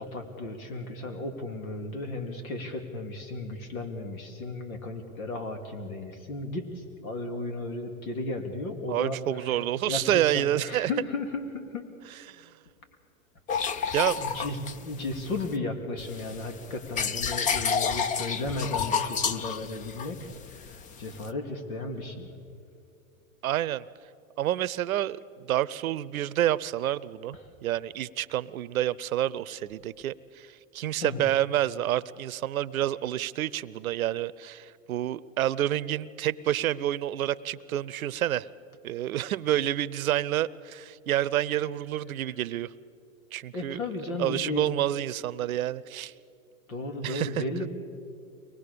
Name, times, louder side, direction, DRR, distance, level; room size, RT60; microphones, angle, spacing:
voice 1, 0.0-11.9 13.6-20.2 20.6-22.3 31.0-31.3 43.5-44.7 46.7-47.7, left 2 dB, 80° left, 6 dB, 2.9 m, -35 dB
voice 2, 8.9-10.9 12.3-12.5 13.9-14.2 23.4-23.8 24.4-25.2 25.5-38.5 38.8-42.7 43.3-43.8 44.2-46.1 47.0-47.4, right 12 dB, 80° right, 20 dB, 0.7 m, -28 dB
sound 1, 13.5-15.6 16.0-21.3, left 6 dB, 20° left, 0.5 m, -30 dB
23.5 x 20.0 x 6.8 m, 2.5 s
hypercardioid pair, 120°, 41 cm